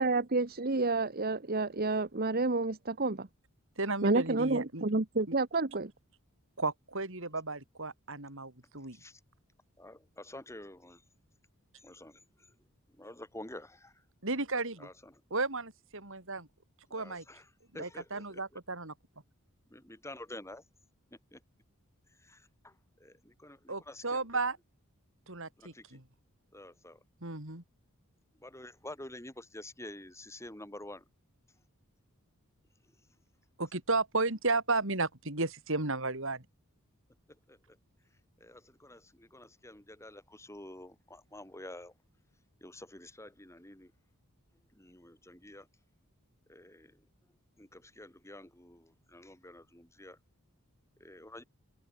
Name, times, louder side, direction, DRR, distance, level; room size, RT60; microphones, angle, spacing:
voice 1, 0.0-3.3 4.0-5.9, right 3 dB, 45° right, 1.2 m, -29 dB
voice 2, 3.8-4.8 5.3-5.4 6.6-9.0 14.2-14.9 15.3-16.5 16.9-17.2 17.7-18.9 23.7-24.6 25.3-26.0 27.2-27.6 33.6-36.5, right 3 dB, 60° right, 5.1 m, -34 dB
voice 3, 9.8-11.0 11.8-12.5 13.0-14.0 14.8-15.2 16.9-17.5 17.7-18.4 19.7-20.6 21.1-21.4 22.2-24.3 25.6-26.0 26.5-27.0 28.4-31.0 37.3-37.8 38.4-41.9 42.6-43.9 44.7-45.7 46.5-47.0 47.6-50.2 51.0-51.4, left 1 dB, 15° left, 6.4 m, -49 dB
open air
head